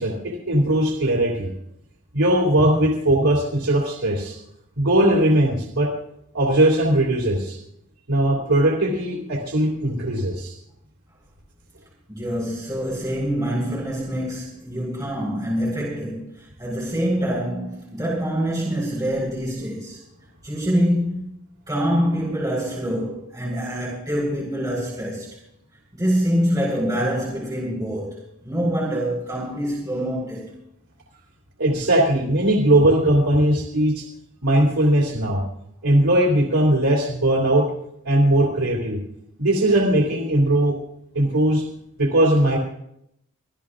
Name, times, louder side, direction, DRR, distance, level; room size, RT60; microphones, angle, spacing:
voice 1, 0.0-1.5 2.1-4.4 4.8-5.9 6.3-7.6 8.1-10.5 31.6-34.1 34.4-35.4 35.8-37.7 38.0-39.0 39.4-40.8 41.1-41.6 42.0-42.6, right 1 dB, 90° right, 3.2 m, -19 dB
voice 2, 12.1-20.0 20.4-21.2 21.7-25.3 25.9-30.5, equal, 15° right, 4.9 m, -25 dB
24.5 x 15.0 x 2.6 m
head